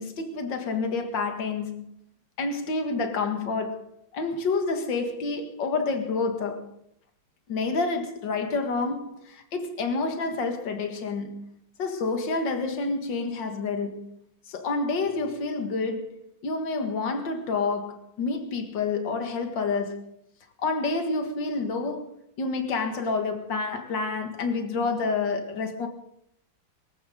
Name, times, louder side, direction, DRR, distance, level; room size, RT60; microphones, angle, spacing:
voice 1, 0.0-1.9 2.4-3.9 4.1-6.7 7.5-11.5 11.8-14.1 14.5-16.1 16.4-20.1 20.6-25.9, left 3 dB, 65° left, 2.5 m, -28 dB
24.5 x 14.0 x 3.8 m
omnidirectional pair, 2.2 m